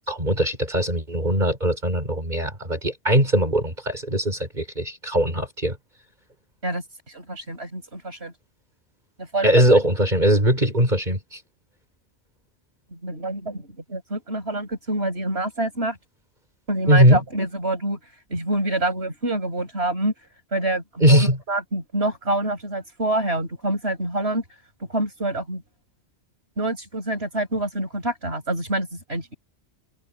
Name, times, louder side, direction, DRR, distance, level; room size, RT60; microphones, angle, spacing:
voice 1, 0.1-5.8 9.4-11.4 16.9-17.2 21.0-21.4, equal, 45° right, 6.2 m, -20 dB
voice 2, 6.6-8.3 9.2-9.8 12.9-16.0 16.7-18.0 18.3-20.1 20.5-24.4 24.8-25.6 26.6-29.3, right 1 dB, 75° right, 7.5 m, -27 dB
omnidirectional pair, 1.1 m